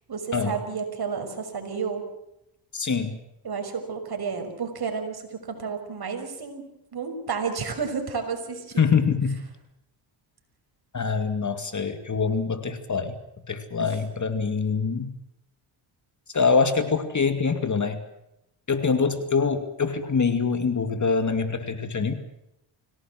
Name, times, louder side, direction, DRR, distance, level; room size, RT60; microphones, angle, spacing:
voice 1, 0.1-2.0 3.4-6.7 6.9-8.9 13.8-13.9, right 5 dB, 50° right, 5 dB, 6.0 m, -31 dB
voice 2, 2.7-3.2 8.8-9.4 10.9-13.2 13.5-15.1 16.3-18.0 18.7-22.1, left 5 dB, 35° left, 9 dB, 2.6 m, -24 dB
25.0 x 18.0 x 7.7 m, 0.84 s
cardioid pair, 80°, 49 cm